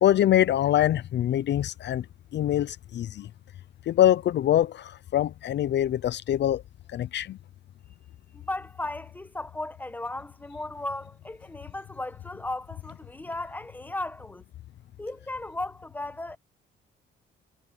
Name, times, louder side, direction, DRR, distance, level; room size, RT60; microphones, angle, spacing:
voice 1, 0.0-2.1 2.3-3.3 3.9-6.6 6.9-7.4, left 12 dB, 60° left, 0.6 m, -24 dB
voice 2, 8.3-14.4 15.0-16.4, left 2 dB, 10° left, 1.1 m, -36 dB
cardioid pair, 90°, 20 cm